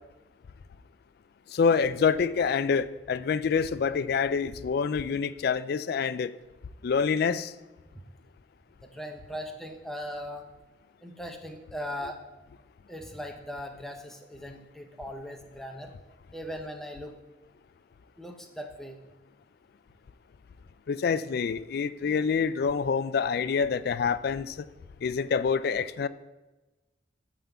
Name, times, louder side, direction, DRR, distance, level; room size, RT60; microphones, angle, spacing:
voice 1, 1.5-6.3 6.8-7.5 20.9-24.7 25.0-26.1, left 6 dB, 55° left, 15 dB, 0.3 m, -26 dB
voice 2, 8.8-10.4 11.0-12.2 12.9-15.9 16.3-17.2 18.2-19.0, equal, ahead, 3 dB, 0.7 m, -39 dB
8.9 x 3.7 x 7.0 m, 1.1 s
head